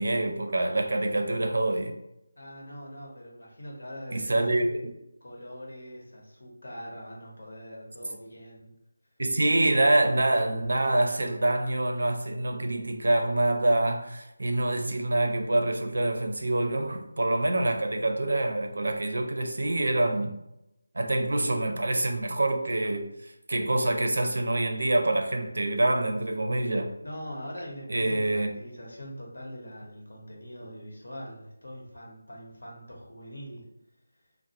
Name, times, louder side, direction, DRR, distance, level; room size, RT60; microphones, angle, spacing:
voice 1, 0.0-2.0 4.1-4.9 9.2-20.4 20.9-23.1 23.5-26.9 27.9-28.5, right 2 dB, 70° right, 0.4 m, -26 dB
voice 2, 2.4-4.4 5.2-8.8 25.4-25.6 27.0-33.7, equal, 75° left, 0.9 m, -42 dB
2.3 x 2.0 x 2.8 m
figure-of-eight pair, 170°, 0 cm